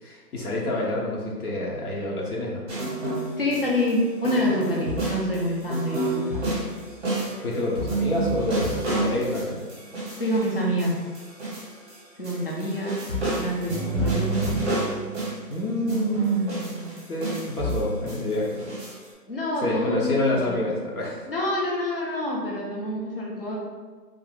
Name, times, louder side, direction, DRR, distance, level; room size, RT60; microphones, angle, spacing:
voice 1, 0.0-2.6 7.4-9.6 15.5-18.6 19.6-21.3, left 1 dB, 65° left, -4 dB, 0.9 m, -28 dB
sound 1, 2.7-3.9 4.2-12.0 12.2-15.5 15.9-19.0, right 2 dB, 15° right, 0.9 m, -29 dB
voice 2, 3.4-6.6 10.2-11.0 12.2-13.0 13.4-14.9 19.3-20.6 21.3-23.6, left 1 dB, 35° left, -3 dB, 0.6 m, -27 dB
3.6 x 2.4 x 3.4 m, 1.4 s
hypercardioid pair, 170°, 49 cm